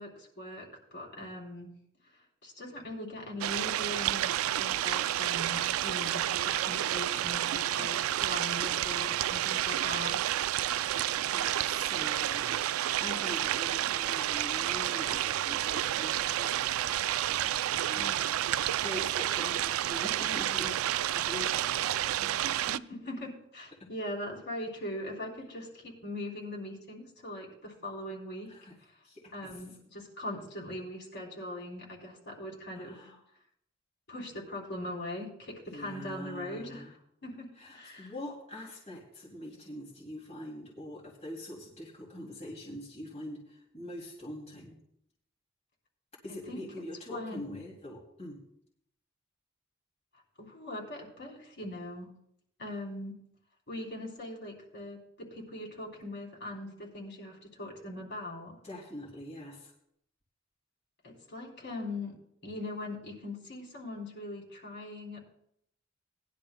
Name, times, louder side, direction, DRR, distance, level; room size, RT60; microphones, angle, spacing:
voice 1, 0.0-1.7 2.1-10.2 17.8-18.3 22.7-28.5 28.8-29.0 29.3-33.0 34.1-36.9 37.2-37.5 37.7-38.1 46.5-46.6 47.1-47.5 50.4-52.1 52.6-53.2 53.7-58.6 61.0-62.2 62.4-65.2, left 1 dB, 60° left, -2 dB, 3.5 m, -41 dB
sound 1, 3.4-22.8, right 12 dB, 85° right, 0.3 m, -30 dB
voice 2, 11.3-12.6 13.0-16.7 17.1-18.2 18.8-20.8 21.1-22.4 23.8-23.9 28.5-28.8 29.0-29.6 32.7-33.2 35.7-36.9 37.6-44.8 46.2-48.4 58.6-59.7, left 1 dB, 35° left, -4 dB, 2.6 m, -44 dB
19.5 x 11.0 x 2.2 m, 0.73 s
head